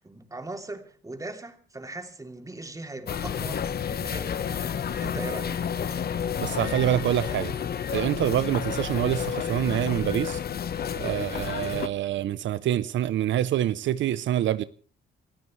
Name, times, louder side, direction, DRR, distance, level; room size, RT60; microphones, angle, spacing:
voice 1, 0.0-5.6, right 2 dB, 15° right, 3.1 m, -39 dB
sound 1, 3.1-11.9, left 8 dB, 50° left, 1.1 m, -30 dB
voice 2, 6.4-7.5 7.9-10.4 11.0-14.6, right 12 dB, 70° right, 0.7 m, -26 dB
29.0 x 15.0 x 3.2 m
cardioid pair, 90°, 20 cm